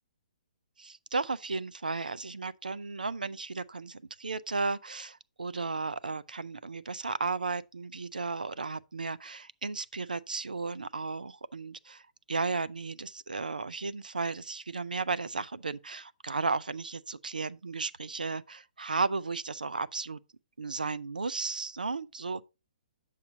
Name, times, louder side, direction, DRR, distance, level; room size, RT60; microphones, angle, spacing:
voice 1, 0.8-12.0 12.3-20.2 20.6-22.4, right 4 dB, 90° right, 0.5 m, -34 dB
8.2 x 6.6 x 2.7 m
hypercardioid pair, 135°, 4 cm